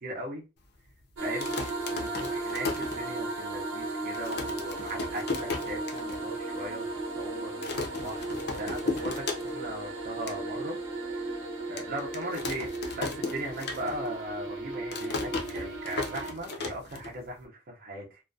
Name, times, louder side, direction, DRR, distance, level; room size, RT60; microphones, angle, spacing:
voice 1, 0.0-0.4 1.2-1.5 1.9-6.9 7.1-10.8 11.7-18.2, right 1 dB, 50° right, 0.5 m, -38 dB
sound 1, 1.2-3.5 3.8-3.9 4.1-6.2 6.6-6.7 6.9-7.2 7.6-9.8 10.0-10.4 10.9-11.0 11.8-14.2 14.5-17.4, left 3 dB, 55° left, 0.5 m, -35 dB
sound 2, 1.2-16.3, right 2 dB, 80° right, 0.8 m, -36 dB
2.3 x 2.1 x 2.5 m
head